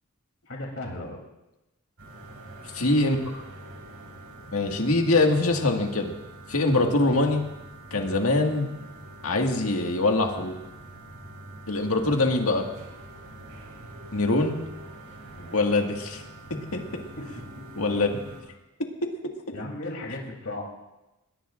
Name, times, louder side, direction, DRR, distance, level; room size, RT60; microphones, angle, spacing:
voice 1, 0.5-1.2 8.0-8.2 12.0-12.2 15.4-15.6 17.2-17.3 19.5-20.6, left 2 dB, 65° left, 0 dB, 3.2 m, -36 dB
sound 1, 2.0-18.4, right 2 dB, 80° right, 4.5 m, -44 dB
voice 2, 2.7-3.2 4.5-6.1 6.5-7.5 7.9-8.7 9.2-10.5 11.7-12.7 14.1-14.6 15.5-16.2 16.5-16.8 17.8-18.2, left 2 dB, 85° left, 2 dB, 1.9 m, -23 dB
21.5 x 20.5 x 2.6 m, 0.97 s
head